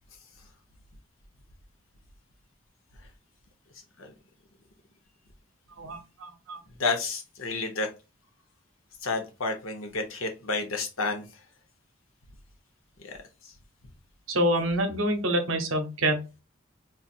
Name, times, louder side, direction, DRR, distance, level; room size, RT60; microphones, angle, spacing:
voice 1, 5.8-6.6 14.3-16.4, right 1 dB, 75° right, 6 dB, 0.8 m, -27 dB
voice 2, 6.8-7.9 9.0-11.2 13.0-13.1, left 3 dB, 90° left, 4 dB, 0.8 m, -30 dB
4.0 x 2.4 x 2.3 m, 0.29 s
head